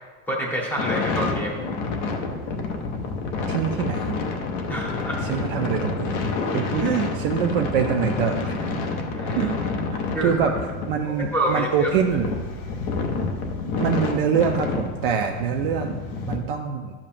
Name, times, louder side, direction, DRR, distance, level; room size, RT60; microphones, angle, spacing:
voice 1, 0.3-1.6 4.7-5.2 9.1-9.5 10.1-10.3 11.3-11.9, right 1 dB, 5° left, -2 dB, 0.8 m, -27 dB
sound 1, 0.8-16.4, left 4 dB, 25° left, 0.4 m, -28 dB
voice 2, 3.5-4.2 5.2-8.5 9.4-9.6 9.9-10.6 10.9-12.3 13.8-16.9, right 7 dB, 45° right, 3 dB, 0.4 m, -25 dB
12.0 x 7.3 x 2.5 m, 1.5 s
supercardioid pair, 175°, 42 cm